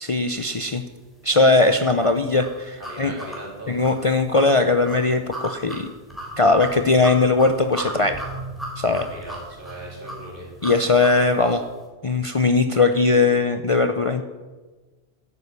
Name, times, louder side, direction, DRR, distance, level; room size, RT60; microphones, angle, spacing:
voice 1, 0.0-0.8 1.2-3.1 3.7-5.9 6.4-8.2 8.8-9.1 10.6-11.6 12.0-14.2, left 3 dB, 35° left, 7 dB, 0.7 m, -19 dB
sound 1, 1.6-11.7, right 1 dB, ahead, 3.6 m, -36 dB
voice 2, 2.8-3.8 8.9-10.5, right 1 dB, 50° right, -2 dB, 4.3 m, -38 dB
12.5 x 9.9 x 8.2 m, 1.3 s
omnidirectional pair, 1.1 m